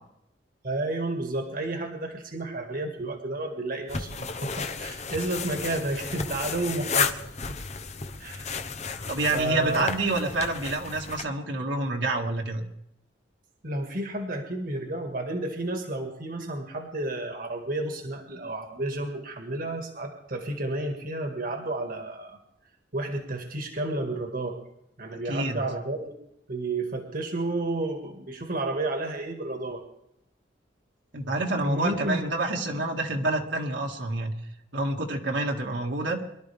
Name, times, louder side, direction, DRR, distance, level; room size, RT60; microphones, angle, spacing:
voice 1, 0.6-7.6 8.2-8.7 9.3-9.9 13.6-22.4 22.9-24.6 25.0-26.1 26.5-29.8 31.6-32.2, right 2 dB, 50° right, 3 dB, 2.0 m, -31 dB
sound 1, 3.9-11.2, left 5 dB, 40° left, 0.9 m, -33 dB
voice 2, 9.1-12.6 25.2-25.6 31.1-34.3 34.7-36.2, right 2 dB, 70° right, 0 dB, 2.2 m, -28 dB
24.0 x 12.5 x 3.5 m, 0.77 s
head